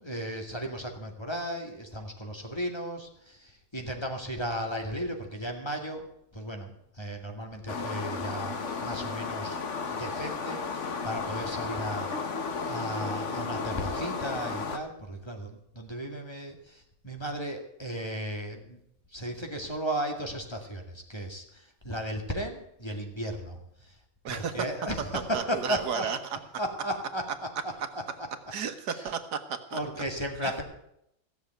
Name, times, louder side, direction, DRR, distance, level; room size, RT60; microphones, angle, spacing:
voice 1, 0.0-6.0 6.3-9.6 9.9-12.1 12.6-18.8 19.1-23.9 24.3-26.1 26.6-28.0 28.9-29.1 29.7-30.6, equal, 15° left, 3 dB, 2.1 m, -35 dB
sound 1, 7.7-14.8, left 4 dB, 50° left, 1.5 m, -33 dB
voice 2, 25.3-26.2 28.5-29.8 30.4-30.6, right 7 dB, 80° right, 8 dB, 1.9 m, -33 dB
16.5 x 7.1 x 9.0 m, 0.77 s
omnidirectional pair, 1.7 m